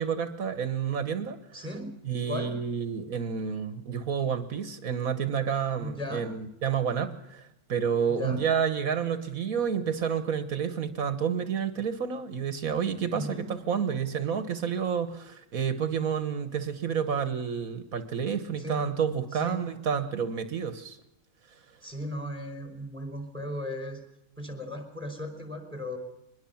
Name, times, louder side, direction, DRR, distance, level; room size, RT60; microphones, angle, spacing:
voice 1, 0.0-1.4 2.1-21.0, right 7 dB, 75° right, 11 dB, 1.6 m, -29 dB
voice 2, 1.5-1.9 2.3-2.5 5.8-6.3 8.1-8.4 13.1-13.5 18.6-18.9 19.3-19.6 21.8-24.0 24.4-26.0, left 1 dB, 10° right, 5 dB, 4.9 m, -36 dB
23.5 x 21.0 x 7.2 m, 0.85 s
omnidirectional pair, 1.5 m